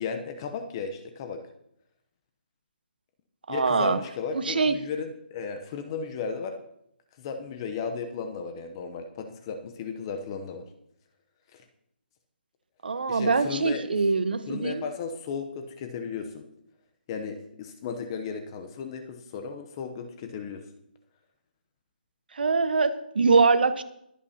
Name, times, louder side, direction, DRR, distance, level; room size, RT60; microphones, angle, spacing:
voice 1, 0.0-1.4 3.5-6.5 7.2-10.7 11.5-11.6 13.1-13.8 14.5-16.4 17.1-20.6, left 5 dB, 25° left, 6 dB, 0.8 m, -35 dB
voice 2, 3.5-4.0 4.3-4.8 12.8-14.8 22.3-23.8, right 4 dB, 65° right, 11 dB, 1.1 m, -23 dB
22.5 x 8.6 x 2.9 m, 0.76 s
hypercardioid pair, 160°, 5 cm